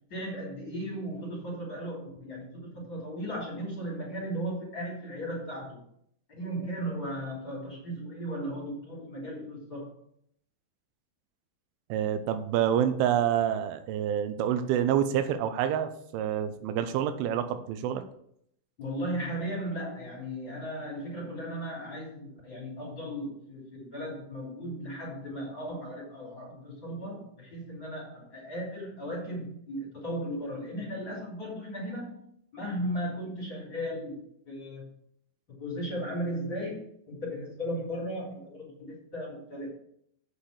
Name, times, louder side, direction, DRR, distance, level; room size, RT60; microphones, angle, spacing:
voice 1, 0.1-5.8 6.4-9.9 18.8-32.2 32.5-34.9 35.5-39.7, equal, 30° left, -5 dB, 3.0 m, -36 dB
voice 2, 11.9-18.0, right 9 dB, 85° right, 9 dB, 3.2 m, -27 dB
8.5 x 5.9 x 6.6 m, 0.69 s
omnidirectional pair, 5.5 m